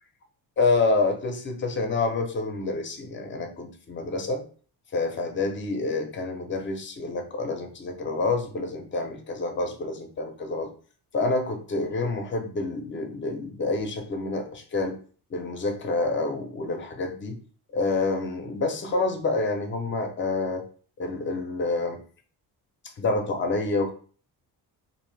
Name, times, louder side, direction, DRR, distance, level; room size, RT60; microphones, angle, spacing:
voice 1, 0.6-4.4 4.9-10.7 11.1-15.0 15.3-17.4 17.7-20.6 21.0-22.0 22.8-23.9, left 3 dB, 30° left, 5 dB, 0.6 m, -28 dB
2.6 x 2.5 x 3.2 m, 0.42 s
cardioid pair, 140°, 40 cm